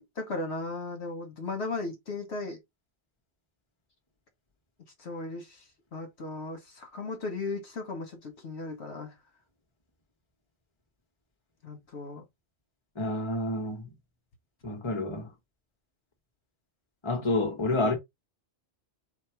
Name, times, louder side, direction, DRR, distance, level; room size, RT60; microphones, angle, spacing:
voice 1, 0.0-2.6 5.0-5.6 5.9-9.1 11.6-12.2, left 3 dB, 70° left, 1.2 m, -36 dB
voice 2, 13.0-13.9 14.6-15.3 17.0-17.9, left 2 dB, 25° left, 1.2 m, -29 dB
4.3 x 2.4 x 4.5 m
omnidirectional pair, 1.2 m